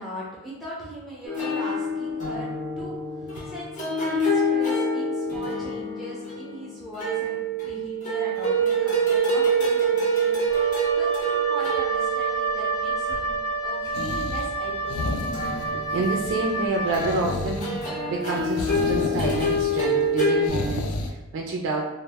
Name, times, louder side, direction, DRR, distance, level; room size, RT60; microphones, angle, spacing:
voice 1, 0.0-2.5 2.8-10.4 10.9-13.3 13.6-15.2, equal, ahead, -8 dB, 0.6 m, -39 dB
sound 1, 1.3-13.2 15.3-16.2 16.9-20.5, right 2 dB, 35° left, 0.7 m, -26 dB
Wind instrument woodwind instrument, 10.5-17.2, right 3 dB, 75° left, 1.1 m, -29 dB
sound 2, 13.9-21.1, left 3 dB, 90° left, 0.3 m, -32 dB
voice 2, 15.7-21.8, right 3 dB, 60° right, 0 dB, 0.3 m, -28 dB
2.0 x 2.0 x 3.3 m, 1.0 s
head